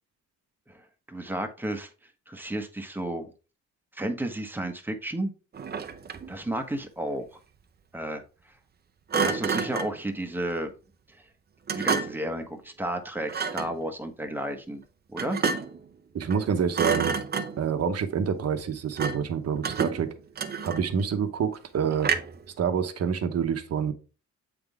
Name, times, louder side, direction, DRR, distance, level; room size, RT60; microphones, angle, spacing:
voice 1, 1.1-1.9 2.3-3.3 3.9-5.3 6.3-7.2 7.9-8.2 9.1-10.7 11.7-14.8 15.1-15.4, right 1 dB, 5° right, 1.1 m, -32 dB
Thump thud, 5.5-6.4 9.1-10.0 11.7-12.3 13.3-13.8 15.2-15.8 16.2-16.5 16.7-17.7 19.0-19.3 19.6-21.0 22.0-22.5, right 5 dB, 35° right, 0.6 m, -29 dB
voice 2, 16.1-17.2 17.6-20.1 20.6-22.1 22.6-23.9, right 7 dB, 55° right, 1.0 m, -27 dB
7.9 x 3.7 x 3.5 m
cardioid pair, 90°, 30 cm